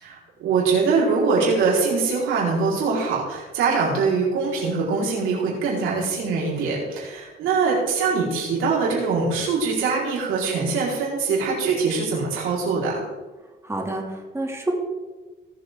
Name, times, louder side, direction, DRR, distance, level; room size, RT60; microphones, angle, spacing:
voice 1, 0.0-13.0, right 4 dB, 90° right, -4 dB, 4.7 m, -23 dB
voice 2, 13.6-14.7, right 1 dB, 15° right, -1 dB, 2.7 m, -28 dB
19.0 x 7.7 x 3.8 m, 1.2 s
cardioid pair, 90°, 20 cm